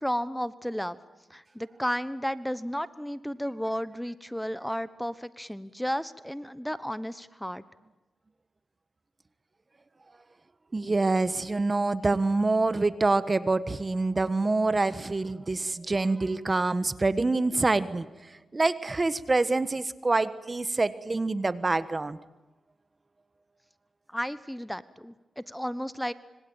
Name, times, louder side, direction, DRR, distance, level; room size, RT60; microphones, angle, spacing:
voice 1, 0.0-1.0 1.3-7.6 24.1-26.1, equal, 5° left, 15 dB, 1.1 m, -33 dB
voice 2, 10.7-18.1 18.5-22.2, right 3 dB, 35° right, 14 dB, 1.3 m, -26 dB
26.0 x 24.5 x 9.0 m, 1.1 s
cardioid pair, 50°, 0 cm